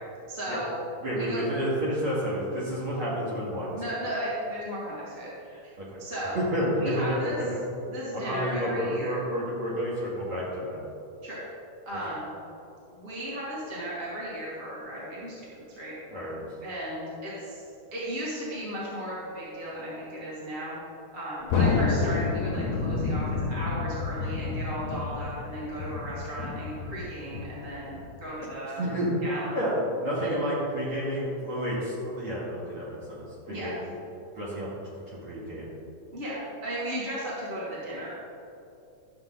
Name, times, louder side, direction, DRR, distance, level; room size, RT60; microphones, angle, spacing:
voice 1, 0.3-0.8 1.1-1.5 3.7-5.7 6.0-6.4 6.7-7.4 7.8-9.2 11.2-11.4 11.9-12.3 12.9-15.9 16.6-17.6 17.9-20.8 21.1-28.8 29.2-29.6 30.2-30.5 33.5-33.7 36.1-38.1, equal, 20° right, -8 dB, 2.4 m, -35 dB
voice 2, 1.0-3.7 5.8-6.0 6.3-7.5 8.1-10.8 16.1-16.4 28.8-29.1 29.5-33.7 34.4-35.7, equal, 45° right, -8 dB, 3.2 m, -30 dB
Thunder, 21.5-28.3, left 4 dB, 70° left, 1.8 m, -29 dB
12.5 x 7.2 x 3.9 m, 2.7 s
omnidirectional pair, 3.5 m